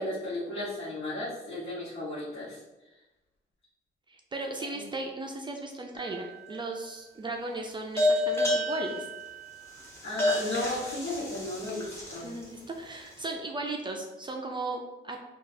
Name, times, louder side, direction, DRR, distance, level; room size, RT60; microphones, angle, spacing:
voice 1, 0.0-2.6 4.7-4.8 10.0-12.3, left 1 dB, 65° left, -10 dB, 1.2 m, -34 dB
voice 2, 4.1-9.1 12.2-15.2, right 2 dB, 25° right, 1 dB, 0.4 m, -36 dB
sound 1, 6.0-6.6 8.0-12.4, left 1 dB, 15° left, 1.1 m, -30 dB
3.8 x 2.3 x 2.7 m, 1.0 s
cardioid pair, 90°, 20 cm